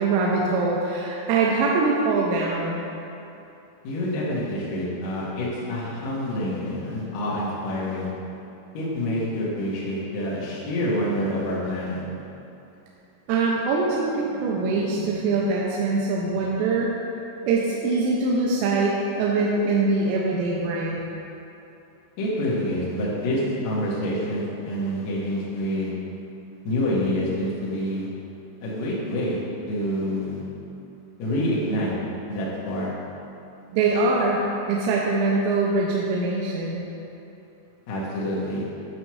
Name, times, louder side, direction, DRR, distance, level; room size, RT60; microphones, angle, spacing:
voice 1, 0.0-2.8 13.3-16.9 17.5-21.0 33.7-36.8, right 3 dB, 85° right, -3 dB, 2.9 m, -23 dB
voice 2, 3.8-8.1 8.7-12.0 22.2-25.9 26.6-28.1 28.6-29.4 29.7-30.4 31.2-31.9 32.3-32.9 37.9-38.6, left 1 dB, 75° left, -8 dB, 1.6 m, -27 dB
8.9 x 5.6 x 3.1 m, 2.8 s
omnidirectional pair, 5.1 m